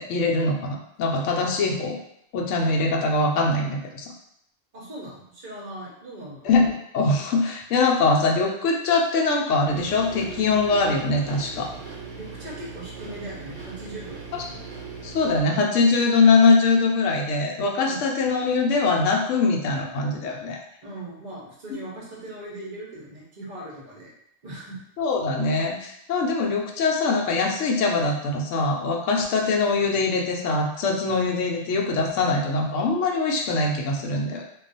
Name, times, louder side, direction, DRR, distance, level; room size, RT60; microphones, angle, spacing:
voice 1, 0.0-2.0 2.3-4.1 6.4-11.7 15.0-20.6 21.7-21.8 25.0-34.4, left 3 dB, 70° left, 1 dB, 0.9 m, -22 dB
voice 2, 4.7-6.5 12.1-14.6 17.8-18.0 20.8-24.1 24.4-24.8, right 1 dB, 40° right, -4 dB, 0.7 m, -39 dB
sound 1, 9.7-15.4, right 4 dB, 75° right, 1.0 m, -39 dB
2.3 x 2.3 x 3.9 m, 0.76 s
omnidirectional pair, 1.4 m